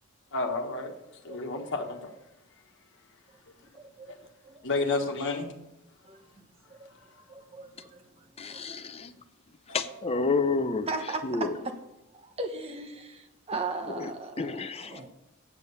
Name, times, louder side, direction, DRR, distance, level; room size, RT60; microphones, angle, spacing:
voice 1, 0.3-0.9 1.2-2.1 4.6-5.5, left 3 dB, 55° left, 2 dB, 1.4 m, -30 dB
voice 2, 3.7-4.1 4.4-4.6 6.0-6.9 7.3-8.6 9.1-9.2 10.9-11.7 12.1-15.1, right 3 dB, 25° right, 4 dB, 1.0 m, -38 dB
voice 3, 8.4-9.1 9.7-10.9 11.2-11.6 14.0-15.1, left 4 dB, 25° left, 10 dB, 0.6 m, -30 dB
8.3 x 7.5 x 6.8 m, 0.93 s
head